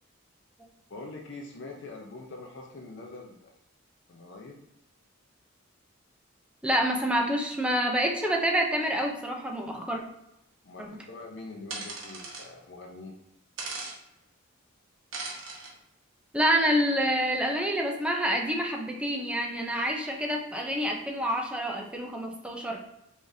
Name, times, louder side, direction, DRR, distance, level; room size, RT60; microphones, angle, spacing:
voice 1, 0.9-3.5 4.1-4.6 10.6-13.1, left 2 dB, 55° left, 1 dB, 0.6 m, -44 dB
voice 2, 6.6-10.0 10.8-11.0 16.3-22.8, equal, 5° right, 1 dB, 0.5 m, -27 dB
sound 1, 11.7-12.5 13.6-14.0 15.1-15.7, right 3 dB, 65° right, 1.1 m, -37 dB
4.7 x 3.6 x 2.7 m, 0.85 s
head